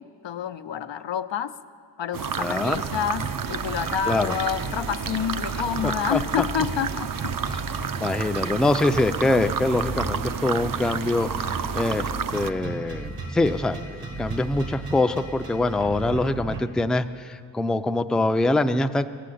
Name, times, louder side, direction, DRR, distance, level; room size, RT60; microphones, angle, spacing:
voice 1, 0.0-1.5 2.0-7.3, left 9 dB, 90° left, 10 dB, 0.6 m, -28 dB
sound 1, 2.1-12.5, right 8 dB, 50° right, 0.5 m, -31 dB
sound 2, 2.3-16.6, right 2 dB, 80° right, 1.7 m, -35 dB
voice 2, 2.4-2.8 4.1-4.3 5.8-6.2 8.0-19.1, left 2 dB, ahead, 7 dB, 0.3 m, -24 dB
16.0 x 7.7 x 8.5 m, 2.2 s
wide cardioid pair, 85°, 43 cm